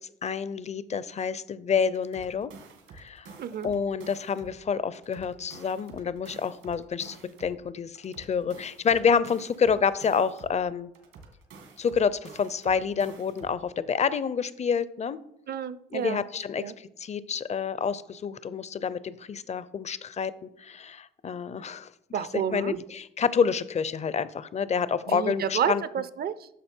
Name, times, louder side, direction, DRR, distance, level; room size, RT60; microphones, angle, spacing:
voice 1, 0.2-2.5 2.9-3.4 3.6-10.9 11.8-15.2 15.9-21.9 22.3-25.8, left 6 dB, 35° left, 16 dB, 0.6 m, -28 dB
sound 1, 1.9-4.6 4.9-7.6 7.9-10.6 10.9-13.6, right 4 dB, 80° right, 2.2 m, -49 dB
voice 2, 3.4-3.7 15.5-16.2 16.6-16.7 22.1-22.8 25.1-26.5, right 8 dB, 50° right, 15 dB, 0.6 m, -30 dB
10.0 x 6.4 x 4.5 m, 0.77 s
cardioid pair, 90°, 20 cm